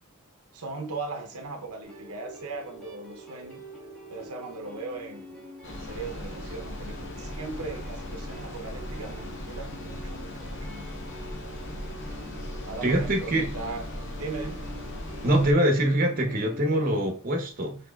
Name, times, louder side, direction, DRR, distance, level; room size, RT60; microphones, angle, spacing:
voice 1, 0.5-3.7 4.1-11.0 12.7-14.7, right 3 dB, 85° right, 0.7 m, -38 dB
sound 1, 1.8-17.1, left 1 dB, 5° left, 1.0 m, -46 dB
sound 2, 5.6-15.5, left 1 dB, 55° left, 0.8 m, -38 dB
voice 2, 12.8-13.5 15.2-17.8, right 1 dB, 40° right, 0.8 m, -24 dB
6.0 x 2.9 x 2.3 m
head